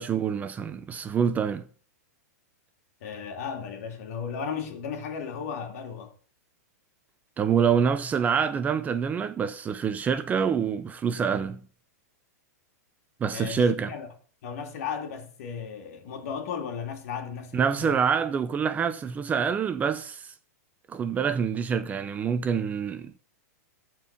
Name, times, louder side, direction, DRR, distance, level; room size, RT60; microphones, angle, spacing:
voice 1, 0.0-1.6 7.4-11.6 13.2-13.9 17.5-20.3 20.9-23.2, right 6 dB, 15° right, 0.6 m, -26 dB
voice 2, 3.0-6.1 13.3-14.1 14.4-18.0, left 6 dB, 60° left, 2.6 m, -35 dB
14.0 x 4.6 x 6.0 m
hypercardioid pair, 140°, 9 cm